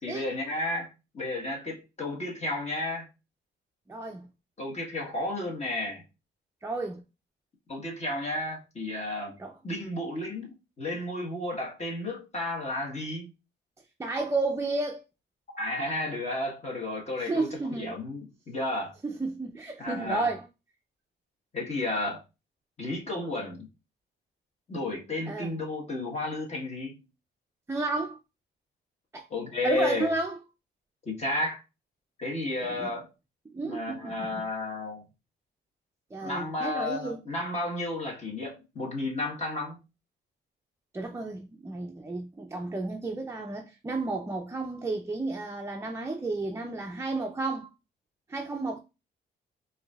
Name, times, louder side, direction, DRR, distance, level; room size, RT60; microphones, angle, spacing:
voice 1, 0.0-3.1 4.6-6.0 7.7-9.4 9.6-10.5 10.8-13.3 15.5-18.9 19.8-20.3 21.5-22.2 22.8-23.7 24.7-27.0 29.3-30.1 31.0-31.6 32.2-33.1 33.6-35.0 36.2-39.8, left 2 dB, 35° left, 1.3 m, -32 dB
voice 2, 3.9-4.3 6.6-7.0 9.4-9.5 14.0-15.0 17.2-17.9 19.0-20.5 25.3-25.5 27.7-28.2 29.1-29.3 29.6-30.4 32.6-32.9 33.5-34.4 36.1-37.2 40.9-47.7 48.3-48.8, right 3 dB, 15° right, 0.4 m, -32 dB
4.7 x 2.7 x 2.3 m
cardioid pair, 90°, 20 cm